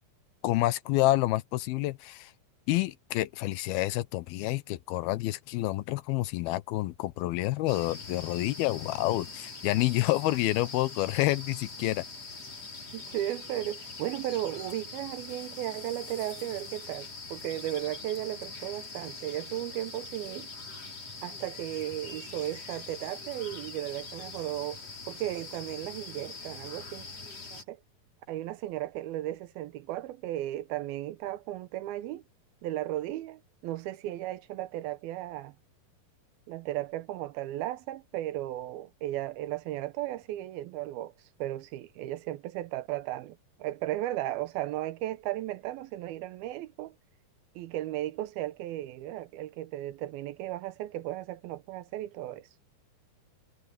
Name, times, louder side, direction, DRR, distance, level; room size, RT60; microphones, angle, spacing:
voice 1, 0.4-2.3 2.7-12.0, left 17 dB, 85° left, 2.7 m, -28 dB
sound 1, 7.7-27.6, left 3 dB, 40° left, 6.5 m, -43 dB
voice 2, 12.9-20.5 21.2-24.8 25.1-27.1 27.5-27.8 28.3-32.2 32.6-35.5 36.5-41.1 41.4-46.9 47.6-52.5, right 14 dB, 85° right, 2.8 m, -35 dB
omnidirectional pair, 4.3 m